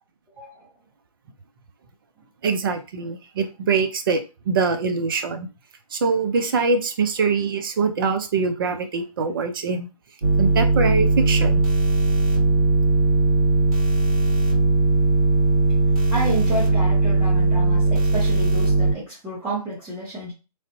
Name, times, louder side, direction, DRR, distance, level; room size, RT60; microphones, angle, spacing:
voice 1, 0.3-0.7 16.1-20.3, right 1 dB, 10° right, 0.8 m, -30 dB
voice 2, 2.4-5.5 5.9-9.9 10.4-11.6, right 4 dB, 35° right, 0.5 m, -23 dB
sound 1, 10.2-18.9, right 2 dB, 60° right, 1.8 m, -19 dB
3.2 x 2.5 x 2.7 m
figure-of-eight pair, 145°, 20 cm